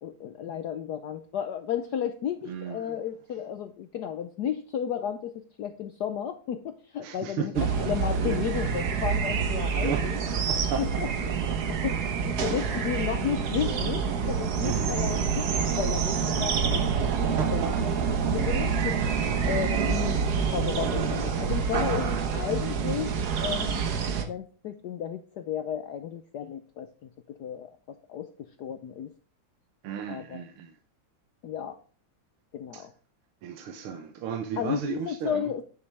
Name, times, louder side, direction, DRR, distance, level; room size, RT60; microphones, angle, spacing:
voice 1, 0.0-10.2 10.8-11.1 11.5-16.9 17.5-17.6 18.1-23.9 24.2-29.1 30.1-30.4 31.4-31.8 32.5-32.9 34.6-35.6, left 9 dB, 70° left, 1.0 m, -33 dB
voice 2, 2.5-3.0 7.0-7.7 8.3-8.4 9.8-10.1 10.5-10.8 11.2-11.6 12.5-12.7 14.6-15.8 17.0-18.1 19.2-19.5 29.8-30.7 32.7-32.8 33.4-35.6, right 7 dB, 80° right, 1.8 m, -35 dB
sound 1, 7.5-24.2, right 6 dB, 50° right, 1.5 m, -27 dB
9.7 x 7.0 x 3.4 m
omnidirectional pair, 2.4 m